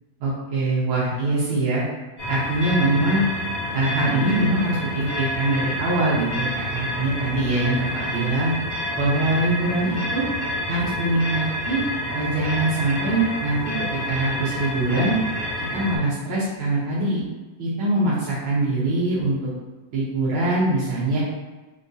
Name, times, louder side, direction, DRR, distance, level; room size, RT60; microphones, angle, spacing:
voice 1, 0.2-1.8 2.3-3.3 3.7-8.5 9.0-10.2 10.7-11.8 12.1-15.1 15.6-17.2 17.6-19.5 19.9-21.2, right 2 dB, 90° right, -9 dB, 1.1 m, -23 dB
sound 1, 2.2-16.0, left 1 dB, 75° left, 0.5 m, -29 dB
4.8 x 2.3 x 2.6 m, 1.2 s
omnidirectional pair, 3.4 m